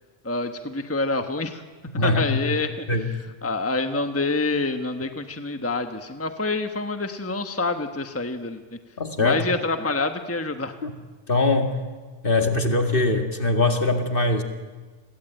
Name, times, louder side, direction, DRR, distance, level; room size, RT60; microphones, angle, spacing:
voice 1, 0.2-1.6 2.0-2.7 3.4-8.6 9.2-10.7, left 3 dB, 10° left, 7 dB, 1.2 m, -27 dB
voice 2, 1.9-2.6 2.9-3.1 9.0-9.4 10.8-10.9 11.3-11.8 12.2-14.4, left 2 dB, 50° left, 5 dB, 2.3 m, -22 dB
30.0 x 21.5 x 9.1 m, 1.4 s
omnidirectional pair, 1.2 m